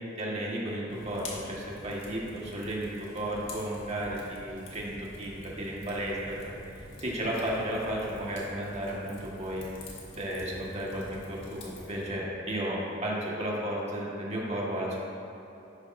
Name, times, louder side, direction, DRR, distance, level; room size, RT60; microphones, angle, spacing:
voice 1, 0.2-6.5 7.0-9.6 10.1-15.0, right 1 dB, 35° right, -4 dB, 1.6 m, -33 dB
Fire, 0.9-12.1, left 1 dB, 65° left, 1.8 m, -47 dB
11.5 x 9.8 x 2.7 m, 3.0 s
head